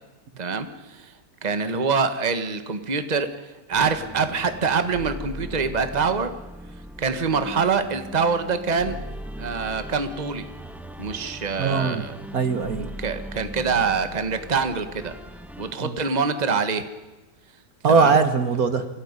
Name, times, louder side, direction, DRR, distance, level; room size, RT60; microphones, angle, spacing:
voice 1, 0.4-1.1 1.4-6.3 7.0-9.0 9.4-10.5 11.0-12.1 12.8-15.1 15.6-16.8 17.9-18.2, right 5 dB, 25° right, 9 dB, 1.6 m, -25 dB
sound 1, 3.7-15.7, right 1 dB, ahead, 1.4 m, -39 dB
voice 2, 11.6-12.1 12.3-12.9 15.8-16.0 17.8-18.9, right 5 dB, 55° right, 10 dB, 1.8 m, -20 dB
26.0 x 16.5 x 9.8 m, 1.1 s
omnidirectional pair, 1.9 m